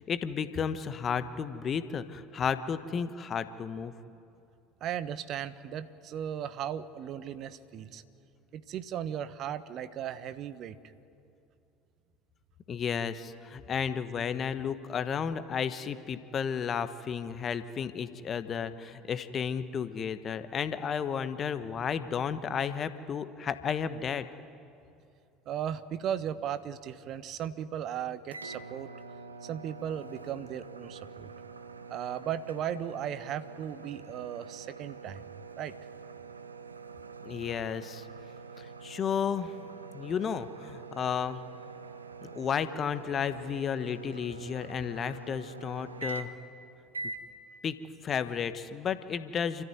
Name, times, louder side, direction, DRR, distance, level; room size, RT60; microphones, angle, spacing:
voice 1, 0.0-3.9 12.7-24.2 37.2-38.1 38.6-39.5 39.9-41.4 42.2-46.3 47.6-47.8 48.0-49.6, left 7 dB, 35° left, 12 dB, 1.3 m, -33 dB
voice 2, 4.8-8.0 8.5-10.8 25.5-28.9 29.4-31.3 31.9-35.2 35.6-35.7, right 9 dB, 45° right, 14 dB, 1.2 m, -36 dB
sound 1, 28.3-46.5 46.9-47.3, right 4 dB, 80° right, 1.0 m, -45 dB
29.0 x 14.0 x 9.6 m, 2.6 s
figure-of-eight pair, 65°, 0 cm